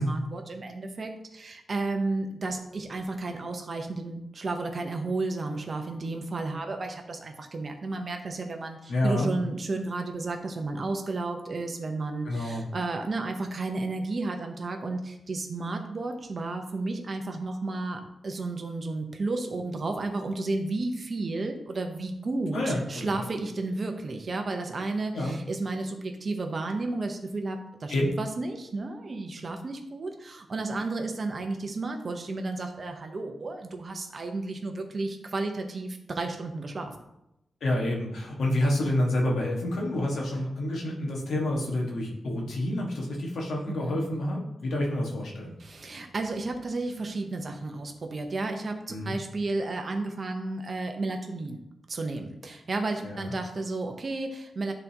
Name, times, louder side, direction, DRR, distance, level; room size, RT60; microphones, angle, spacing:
voice 1, 0.0-37.0 43.8-44.0 45.6-51.6 51.9-54.7, right 3 dB, 40° right, 4 dB, 0.8 m, -32 dB
voice 2, 8.9-9.3 12.2-12.6 22.5-23.3 25.1-25.4 27.9-28.0 37.6-45.6 48.9-49.1 53.0-53.3, left 1 dB, 85° left, -2 dB, 1.6 m, -28 dB
11.5 x 4.0 x 2.9 m, 0.87 s
wide cardioid pair, 145°, 0 cm